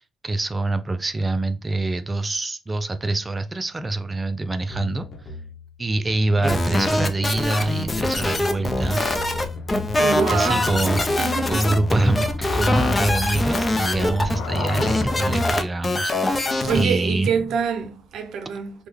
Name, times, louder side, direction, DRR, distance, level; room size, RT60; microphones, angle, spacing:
voice 1, 0.0-5.3 5.8-9.0 10.3-16.4 16.7-17.3, right 2 dB, 25° right, 0.3 m, -25 dB
sound 1, 4.7-6.9 7.2-8.0 8.3-11.3 11.6-14.1, left 2 dB, 60° left, 0.8 m, -37 dB
sound 2, 6.4-16.8, left 2 dB, 25° left, 0.6 m, -24 dB
sound 3, 9.0-15.5, left 3 dB, 85° left, 0.4 m, -32 dB
voice 2, 10.0-10.7 11.2-11.8 16.5-18.9, right 6 dB, 75° right, 0.5 m, -26 dB
3.3 x 2.2 x 3.1 m
supercardioid pair, 70°, 0 cm